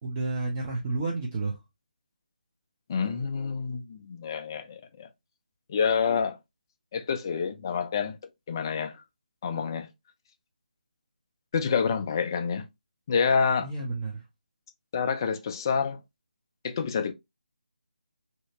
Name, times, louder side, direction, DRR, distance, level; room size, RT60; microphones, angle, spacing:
voice 1, 0.0-1.6 13.6-14.2, right 3 dB, 25° right, 0.6 m, -31 dB
voice 2, 2.9-5.1 5.7-6.4 6.9-8.2 8.5-9.0 9.4-9.9 11.5-12.7 13.1-13.7 14.9-16.0 16.6-17.1, left 6 dB, 25° left, 0.4 m, -27 dB
2.8 x 2.8 x 2.7 m
figure-of-eight pair, 150°, 5 cm